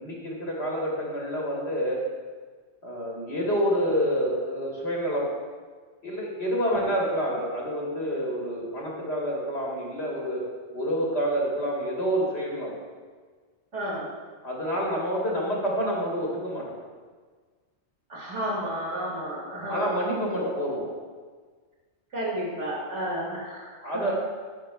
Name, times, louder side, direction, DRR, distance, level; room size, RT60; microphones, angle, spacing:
voice 1, 0.0-2.0 2.8-5.3 6.0-10.4 10.7-12.7 14.4-16.8 19.7-20.9 23.8-24.1, equal, 70° left, -3 dB, 1.6 m, -28 dB
voice 2, 13.7-14.1 18.1-19.9 20.3-20.5 22.1-24.1, equal, 85° right, -5 dB, 2.1 m, -32 dB
9.1 x 5.5 x 2.2 m, 1.5 s
omnidirectional pair, 1.2 m